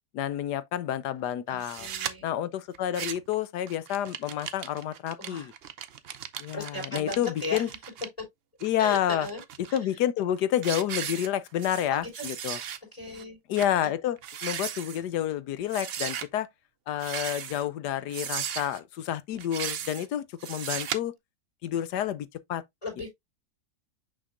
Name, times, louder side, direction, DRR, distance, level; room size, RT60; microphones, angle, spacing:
voice 1, 0.1-1.9 2.2-5.5 6.4-7.7 8.6-9.3 9.7-12.6 13.5-16.5 16.9-21.1 21.6-22.6, left 11 dB, 80° left, 1.2 m, -29 dB
voice 2, 1.5-2.2 5.2-5.5 6.5-7.8 8.2-8.3 8.8-9.4 9.7-9.8 11.9-12.3 12.9-13.4 13.8-13.9 22.8-23.1, left 2 dB, 20° left, 4.8 m, -37 dB
sound 1, 1.6-2.1 2.7-3.3 3.7-8.1 8.6-9.8 10.2-10.4 10.6-11.9 12.1-12.8 13.1-13.2 13.6-13.7 14.2-15.0 15.7-16.3 17.0-17.7 18.1-18.8 19.4-20.1 20.4-21.0, right 9 dB, 65° right, 0.6 m, -36 dB
6.5 x 5.9 x 2.5 m
omnidirectional pair, 1.8 m